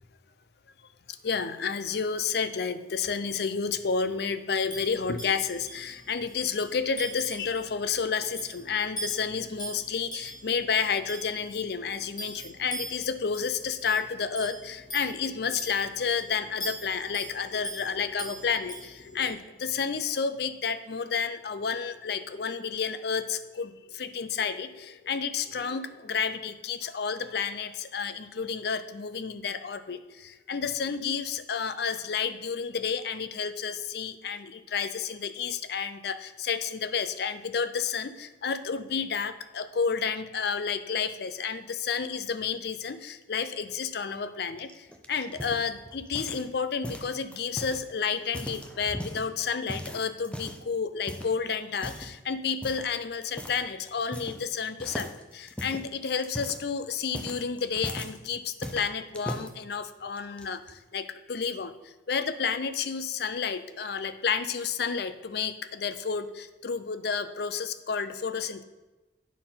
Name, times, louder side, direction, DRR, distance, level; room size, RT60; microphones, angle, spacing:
voice 1, 1.2-61.7 62.1-68.6, left 6 dB, 60° left, 12 dB, 0.5 m, -31 dB
sound 1, 4.7-19.3, right 1 dB, 25° left, 1.3 m, -42 dB
sound 2, 44.6-46.5 46.8-47.8 48.2-49.3 49.7-50.7 51.1-51.3 51.8-52.1 52.6-52.9 53.4-53.6 53.9-54.5 54.8-58.2 58.6-59.5 60.2-60.7, equal, 5° left, 0.6 m, -38 dB
9.4 x 4.5 x 5.6 m, 1.1 s
head